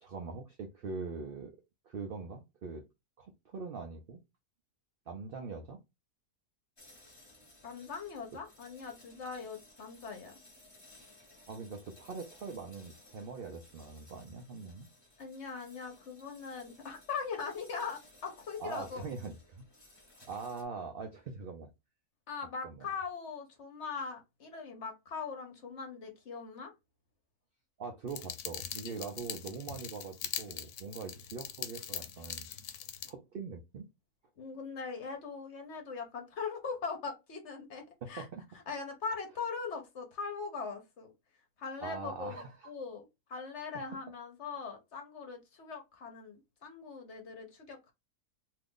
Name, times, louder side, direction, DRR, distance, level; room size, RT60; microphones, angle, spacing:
voice 1, 0.0-1.5 1.8-2.8 3.2-4.2 5.1-5.8 11.5-14.9 18.6-19.6 20.1-21.7 22.6-22.9 27.8-32.5 33.0-33.9 38.0-38.4 41.8-42.7, right 4 dB, 80° right, 0.5 m, -42 dB
sound 1, 6.8-20.7, left 2 dB, 20° left, 1.0 m, -59 dB
voice 2, 7.6-10.3 15.2-19.0 22.3-26.7 34.4-38.3 38.7-41.1 41.6-47.9, left 5 dB, 55° left, 0.9 m, -41 dB
sound 2, 28.1-33.1, left 9 dB, 80° left, 1.1 m, -42 dB
2.7 x 2.5 x 3.6 m
omnidirectional pair, 1.6 m